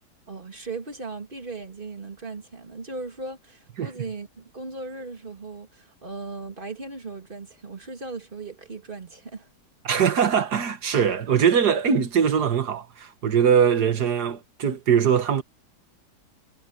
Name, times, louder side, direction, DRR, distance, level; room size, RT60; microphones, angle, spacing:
voice 1, 0.3-9.5, right 3 dB, 30° right, 2.8 m, -37 dB
voice 2, 9.9-15.4, right 7 dB, 70° right, 2.0 m, -21 dB
omnidirectional pair, 1.8 m